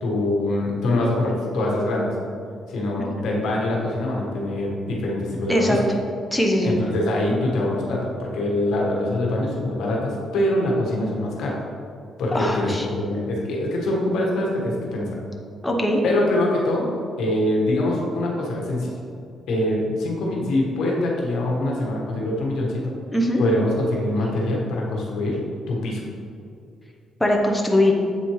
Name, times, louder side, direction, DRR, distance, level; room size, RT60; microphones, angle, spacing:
voice 1, 0.0-2.1 2.7-5.8 6.6-11.6 12.2-15.2 16.0-19.0 19.5-22.9 23.4-25.4 25.7-26.0, left 1 dB, 80° left, -2 dB, 1.3 m, -24 dB
voice 2, 5.5-5.8 6.3-6.8 12.3-12.9 15.6-16.0 23.1-23.4 27.2-27.9, left 1 dB, 10° left, 0 dB, 0.8 m, -21 dB
7.9 x 4.3 x 3.1 m, 2.4 s
cardioid pair, 90°, 0 cm